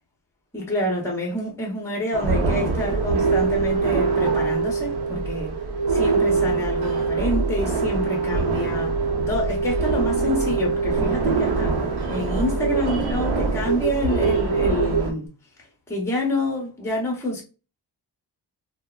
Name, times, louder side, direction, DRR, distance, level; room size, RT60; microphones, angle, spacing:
voice 1, 0.5-5.5 5.9-9.0 9.3-11.8 12.1-15.3 15.6-17.4, left 1 dB, 5° left, 0.7 m, -27 dB
sound 1, 2.1-15.1, right 3 dB, 70° right, 0.8 m, -26 dB
sound 2, 2.6-15.0, right 5 dB, 30° right, 0.6 m, -25 dB
3.3 x 2.1 x 2.3 m
wide cardioid pair, 165°, 40 cm